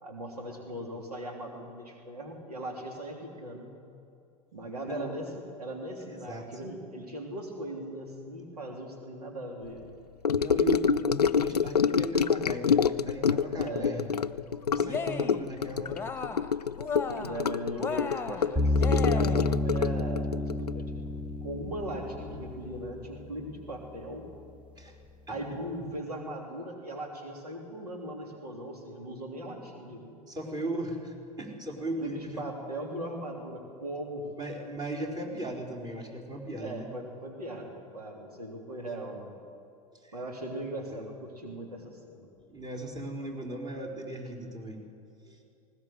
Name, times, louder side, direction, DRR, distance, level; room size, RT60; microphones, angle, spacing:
voice 1, 0.0-3.7 4.5-9.8 13.4-14.1 17.1-21.0 21.4-24.2 25.3-30.2 32.0-34.3 36.6-39.3 40.1-42.3, right 1 dB, 80° right, 1 dB, 3.3 m, -39 dB
Gurgling / Sink (filling or washing) / Trickle dribble, 10.2-21.9 22.2-22.5 22.8-22.9, left 6 dB, 85° left, 0.5 m, -27 dB
voice 2, 10.4-14.1 14.7-15.9 24.8-25.0 30.3-32.4 34.4-36.9 40.0-40.1 40.9-41.0 42.5-44.8 45.3-45.4, right 1 dB, 20° right, -1 dB, 4.5 m, -37 dB
Cheering, 14.8-15.5 15.8-16.5 16.8-17.5 17.8-19.6, left 5 dB, 10° left, 1.5 m, -35 dB
sound 1, 18.6-23.7, left 1 dB, 5° right, 1.0 m, -30 dB
19.5 x 19.5 x 8.1 m, 2.6 s
figure-of-eight pair, 85°, 20 cm